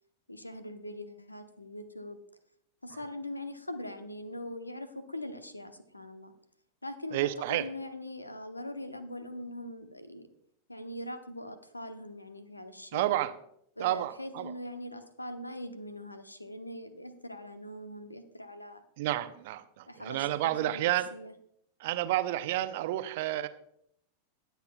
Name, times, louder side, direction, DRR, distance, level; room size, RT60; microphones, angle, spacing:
voice 1, 0.3-2.2 2.8-6.3 6.8-10.3 10.7-13.1 13.8-18.8 19.9-21.3, left 1 dB, 85° left, 10 dB, 0.9 m, -42 dB
voice 2, 7.1-7.6 12.9-13.3 13.8-14.5 19.0-21.1 21.8-23.5, right 14 dB, 50° right, 12 dB, 0.7 m, -30 dB
21.5 x 8.2 x 2.3 m, 0.73 s
figure-of-eight pair, 90°, 0 cm